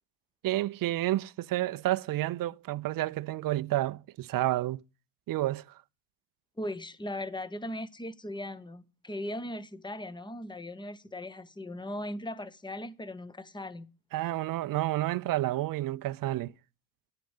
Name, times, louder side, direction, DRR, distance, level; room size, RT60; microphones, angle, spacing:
voice 1, 0.4-4.8 5.3-5.6 14.1-16.5, right 15 dB, 45° right, 0.5 m, -30 dB
voice 2, 6.6-13.9, left 1 dB, 10° left, 0.8 m, -38 dB
10.5 x 5.2 x 7.3 m
hypercardioid pair, 60°, 50 cm